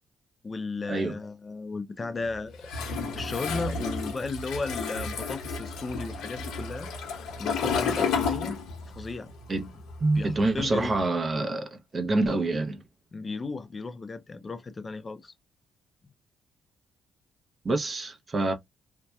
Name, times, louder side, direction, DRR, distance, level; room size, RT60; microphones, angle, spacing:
voice 1, 0.4-2.7 3.2-6.9 7.4-8.6 8.9-9.3 10.2-11.0 13.1-15.3, left 3 dB, 30° left, 0.4 m, -35 dB
Toilet flush, 2.6-9.1 9.3-10.9, left 5 dB, 85° left, 0.9 m, -31 dB
voice 2, 10.0-12.8 17.6-18.5, right 2 dB, 35° right, 0.6 m, -26 dB
2.6 x 2.1 x 2.2 m
cardioid pair, 90°, 0 cm